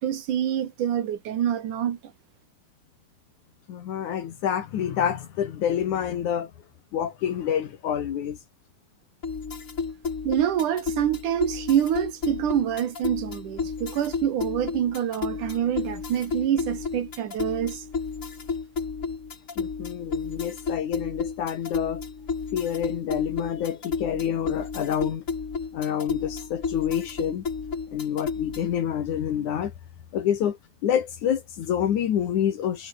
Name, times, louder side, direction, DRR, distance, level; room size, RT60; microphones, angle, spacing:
voice 1, 0.0-2.0 10.2-17.8, right 10 dB, 75° right, 3.3 m, -26 dB
voice 2, 3.7-6.5 6.9-8.4 19.6-22.0 22.5-25.2 25.7-27.4 27.9-29.7 30.1-32.9, left 9 dB, 70° left, 3.2 m, -27 dB
sound 1, 9.2-28.8, left 5 dB, 30° left, 1.9 m, -32 dB
omnidirectional pair, 3.6 m